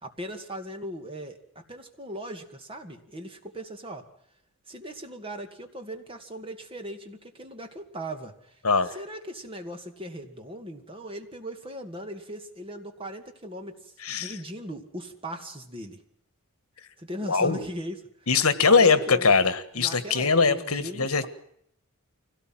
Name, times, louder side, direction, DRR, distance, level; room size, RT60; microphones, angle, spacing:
voice 1, 0.0-4.0 4.7-8.6 8.9-16.0 17.0-18.0 18.7-19.3 19.7-21.3, right 1 dB, 25° right, 5 dB, 2.3 m, -39 dB
voice 2, 14.0-14.3 17.3-17.6 18.3-21.3, left 4 dB, 80° left, 12 dB, 1.6 m, -21 dB
25.0 x 17.5 x 7.7 m, 0.72 s
head